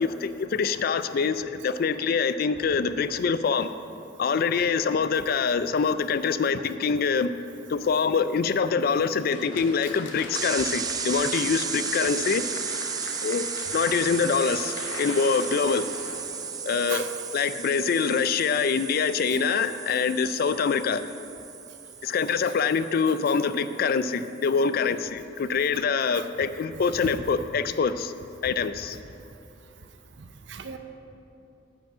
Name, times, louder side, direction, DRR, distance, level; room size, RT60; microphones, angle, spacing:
voice 1, 0.0-3.7 4.2-7.3 7.7-12.4 13.2-15.9 16.7-17.0 17.3-21.0 22.0-28.1 28.4-29.0, left 5 dB, 55° left, 12 dB, 0.3 m, -25 dB
Applause, 9.0-17.1, left 3 dB, 85° left, 1.0 m, -40 dB
sound 1, 10.3-23.9, right 6 dB, 20° right, 0.4 m, -34 dB
voice 2, 19.3-19.6 25.9-26.3 27.0-27.1 30.5-30.8, right 5 dB, 70° right, 8 dB, 0.6 m, -36 dB
9.0 x 5.1 x 7.6 m, 2.8 s
head